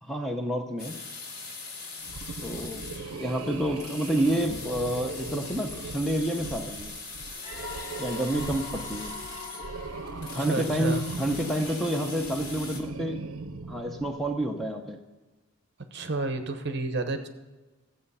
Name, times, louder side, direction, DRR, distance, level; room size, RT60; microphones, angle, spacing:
voice 1, 0.0-1.0 2.4-6.9 8.0-9.1 10.3-13.2 13.7-15.0, right 1 dB, ahead, 3 dB, 0.7 m, -29 dB
sound 1, 0.8-12.8, left 4 dB, 70° left, 2.6 m, -41 dB
sound 2, 2.0-14.5, right 3 dB, 75° right, 0.7 m, -39 dB
sound 3, 7.4-12.0, left 3 dB, 35° left, 1.6 m, -43 dB
voice 2, 10.4-11.0 15.9-17.3, right 3 dB, 50° right, 8 dB, 0.9 m, -31 dB
14.5 x 7.7 x 5.6 m, 1.2 s
head